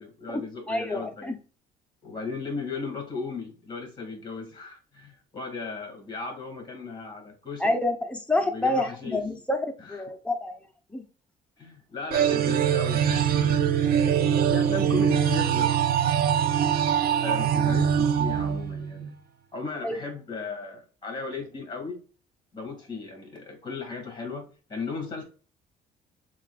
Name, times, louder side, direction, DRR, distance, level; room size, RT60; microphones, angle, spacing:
voice 1, 0.0-1.3 2.0-7.8 8.4-9.2 9.8-10.0 11.6-13.7 14.5-15.7 17.2-19.1 19.5-22.0 22.5-25.2, left 4 dB, 25° left, 2.4 m, -36 dB
voice 2, 0.7-1.4 7.6-10.5 10.9-11.0 19.8-19.9, left 2 dB, 5° left, 0.8 m, -28 dB
sound 1, 12.1-19.1, right 8 dB, 65° right, 0.6 m, -23 dB
7.2 x 2.6 x 2.5 m
cardioid pair, 110°, 17 cm